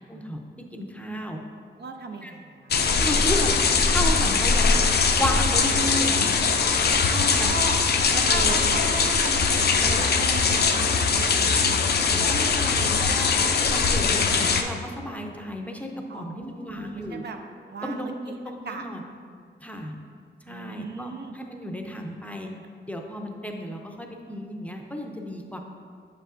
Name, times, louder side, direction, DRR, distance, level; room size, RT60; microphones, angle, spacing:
voice 1, 0.1-0.4 0.7-1.4 2.2-2.4 3.0-3.6 3.9-4.8 5.2-6.3 7.4-7.5 8.1-8.7 12.0-17.2 17.8-18.2 18.4-19.0 19.6-19.9 20.4-22.5 22.9-25.6, equal, 5° left, 2 dB, 0.5 m, -33 dB
voice 2, 1.8-2.7 7.1-7.8 8.3-11.7 16.1-17.4 17.7-18.3 18.7-18.8 20.5-21.3, right 3 dB, 65° right, 5 dB, 0.5 m, -36 dB
sound 1, 2.7-14.6, left 5 dB, 60° left, 0.4 m, -21 dB
6.9 x 5.4 x 2.5 m, 2.2 s
wide cardioid pair, 85°, 19 cm